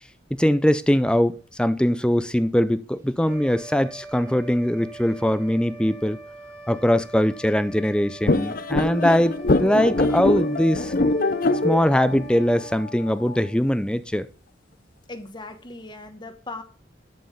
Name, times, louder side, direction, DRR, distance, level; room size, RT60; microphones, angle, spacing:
voice 1, 0.4-6.2 6.7-10.9 11.6-14.3, equal, 5° left, 0.4 m, -21 dB
sound 1, 3.2-13.8, right 2 dB, 15° right, 1.9 m, -43 dB
sound 2, 8.3-13.4, left 2 dB, 50° left, 0.7 m, -24 dB
voice 2, 15.1-16.6, left 2 dB, 25° left, 1.1 m, -38 dB
11.5 x 5.5 x 5.6 m
head